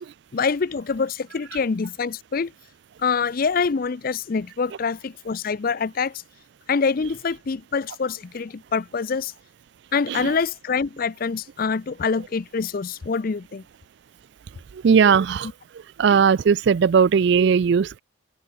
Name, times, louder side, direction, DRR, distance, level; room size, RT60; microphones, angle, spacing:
voice 1, 0.3-2.5 3.0-6.2 6.7-9.3 9.9-13.6, left 5 dB, 45° left, 0.5 m, -25 dB
voice 2, 14.7-15.5 16.0-18.0, right 6 dB, 55° right, 0.3 m, -18 dB
open air
head